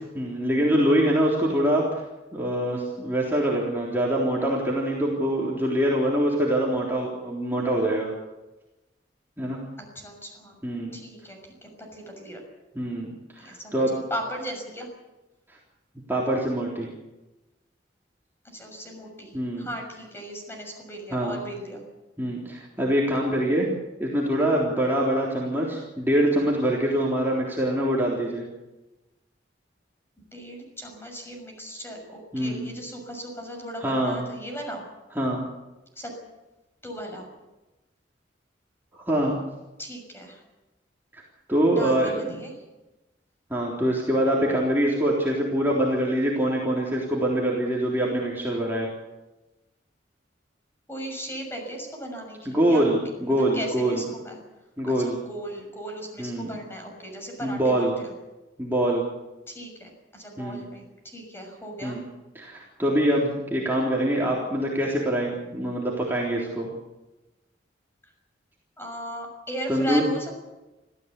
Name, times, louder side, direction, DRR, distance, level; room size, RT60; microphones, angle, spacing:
voice 1, 0.2-2.0 2.3-8.1 9.4-9.6 10.6-10.9 12.8-13.1 13.3-13.9 16.1-16.9 19.3-19.7 21.1-21.4 22.2-23.7 24.0-28.5 32.3-32.7 33.8-34.2 35.2-35.5 39.1-39.4 41.1-41.2 41.5-42.3 43.5-48.9 52.5-54.0 54.8-55.2 56.2-56.5 57.4-57.9 58.6-59.1 60.4-60.6 61.8-62.0 62.4-66.7 69.7-70.0, right 1 dB, 10° right, -4 dB, 3.6 m, -24 dB
voice 2, 9.8-10.6 10.9-12.4 13.4-14.9 18.4-21.8 23.3-23.6 30.2-34.8 36.0-36.1 36.8-37.3 39.8-40.4 41.7-42.5 50.9-52.8 53.3-54.4 54.9-58.1 59.5-62.0 68.0-68.1 68.8-70.4, equal, 15° left, 2 dB, 6.4 m, -37 dB
25.5 x 15.5 x 8.4 m, 1.1 s
head